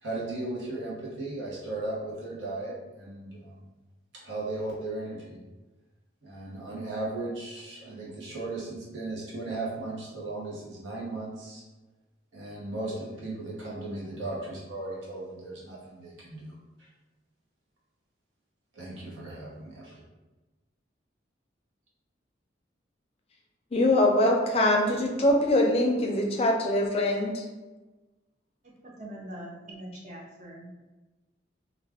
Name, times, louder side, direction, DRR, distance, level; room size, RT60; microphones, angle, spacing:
voice 1, 0.0-3.7 4.1-5.4 6.2-11.6 12.3-16.9 18.7-20.0, right 2 dB, 90° right, -5 dB, 1.0 m, -36 dB
voice 2, 23.7-27.4, left 1 dB, 30° left, 1 dB, 0.4 m, -23 dB
voice 3, 28.8-30.7, right 1 dB, 40° right, -2 dB, 0.5 m, -42 dB
2.4 x 2.4 x 3.4 m, 1.2 s
head